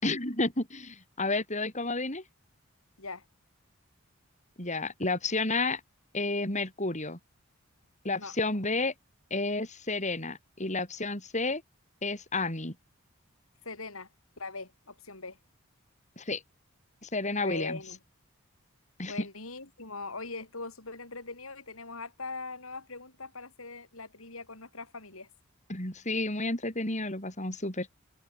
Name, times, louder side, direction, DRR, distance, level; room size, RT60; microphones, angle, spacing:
voice 1, 0.0-2.2 4.6-5.8 6.1-7.2 8.0-8.9 9.3-11.6 12.0-12.7 16.2-16.4 17.0-17.8 19.0-19.1 25.7-27.9, left 2 dB, 35° left, 7.5 m, -31 dB
voice 2, 13.6-14.1 14.4-15.4 17.4-18.0 19.1-25.3, left 3 dB, 85° left, 7.5 m, -41 dB
open air
head